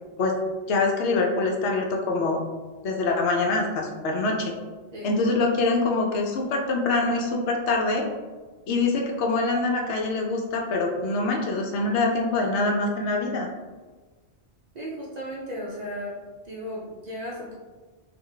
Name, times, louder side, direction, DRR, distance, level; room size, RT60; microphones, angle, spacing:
voice 1, 0.7-2.4 2.8-4.5 5.0-8.1 8.7-13.5, left 3 dB, 85° left, 1 dB, 0.9 m, -24 dB
voice 2, 14.7-16.2 16.4-17.6, equal, 50° right, -4 dB, 0.5 m, -35 dB
2.4 x 2.1 x 3.7 m, 1.3 s
omnidirectional pair, 1.1 m